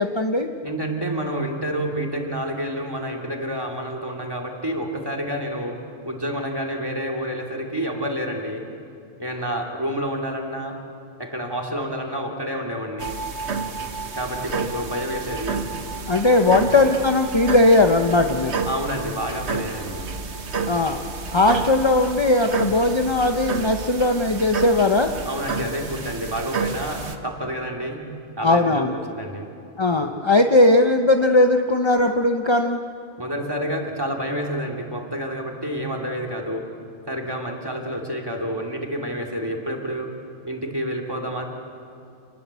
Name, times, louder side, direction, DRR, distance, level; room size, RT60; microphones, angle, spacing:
voice 1, 0.0-0.5 16.1-18.7 20.7-21.0 21.3-25.1 28.4-29.0 29.8-32.8, left 2 dB, 25° left, 5 dB, 0.9 m, -18 dB
voice 2, 0.6-5.8 6.0-8.6 9.2-10.8 11.2-13.2 14.1-15.6 16.5-16.6 18.7-20.0 25.2-28.0 28.4-29.5 33.2-36.7 37.1-40.1 40.4-41.4, equal, 20° right, 3 dB, 2.8 m, -29 dB
sound 1, 13.0-27.2, right 4 dB, 85° right, 1.6 m, -30 dB
28.0 x 20.5 x 8.3 m, 2.5 s
omnidirectional pair, 1.1 m